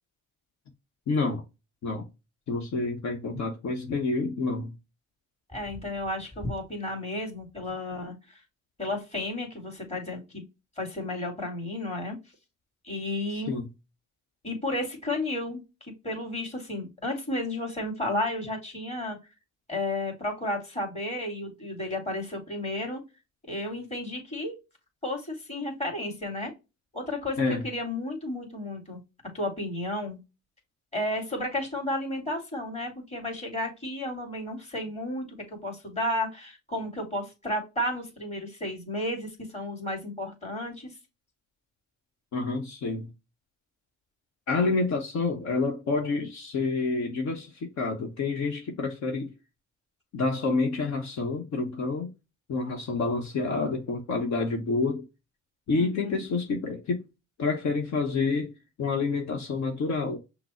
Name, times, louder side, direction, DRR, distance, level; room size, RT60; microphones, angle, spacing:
voice 1, 1.1-1.4 1.8-2.1 2.5-4.7 13.3-13.7 27.4-27.6 42.3-43.1 44.5-49.3 50.1-52.1 52.5-55.0 55.7-57.0 57.4-58.5 58.8-60.2, left 3 dB, 65° left, 1.1 m, -28 dB
voice 2, 5.5-8.4 8.8-10.5 10.8-12.2 12.8-13.6 14.4-15.6 16.0-19.2 19.7-23.0 23.5-24.5 25.0-26.5 26.9-29.0 29.3-30.2 30.9-40.9 55.7-56.2, left 1 dB, 20° left, 2.4 m, -32 dB
5.9 x 2.1 x 4.2 m
cardioid pair, 90°, 30 cm